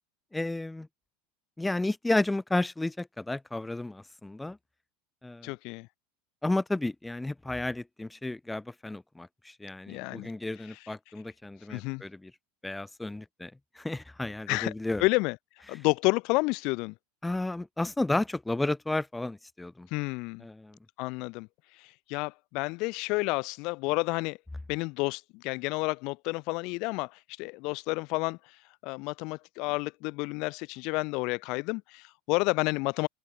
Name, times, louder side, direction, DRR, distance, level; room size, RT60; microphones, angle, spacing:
voice 1, 0.3-0.9 1.6-4.6 5.2-5.5 6.4-12.3 12.6-15.0 17.2-19.9 20.4-20.8, left 2 dB, 5° left, 5.8 m, -32 dB
voice 2, 5.4-5.9 9.9-10.3 10.7-10.8 11.7-12.0 14.5-14.7 15.0-15.4 15.7-16.9 19.9-20.4 21.0-24.4 24.7-28.6 28.8-33.1, left 26 dB, 55° left, 2.9 m, -30 dB
open air
supercardioid pair, 140°, 0 cm